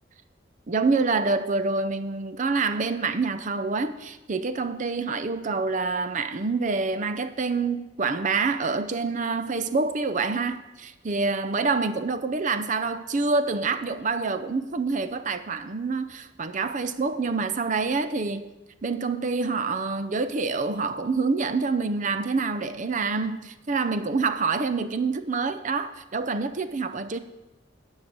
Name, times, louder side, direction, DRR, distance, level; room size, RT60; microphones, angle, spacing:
voice 1, 0.7-18.5 18.8-27.2, right 4 dB, 40° right, 0.6 m, -27 dB
9.6 x 5.6 x 7.4 m
head